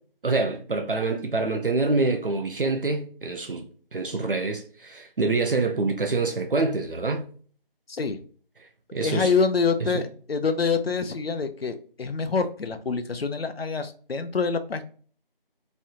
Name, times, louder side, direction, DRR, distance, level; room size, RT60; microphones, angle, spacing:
voice 1, 0.2-3.7 3.9-7.3 8.9-9.3 9.9-10.1, right 3 dB, 65° right, 0.6 m, -26 dB
voice 2, 7.9-8.2 9.0-14.8, left 5 dB, 85° left, 0.6 m, -26 dB
3.1 x 2.5 x 2.9 m
figure-of-eight pair, 170°, 29 cm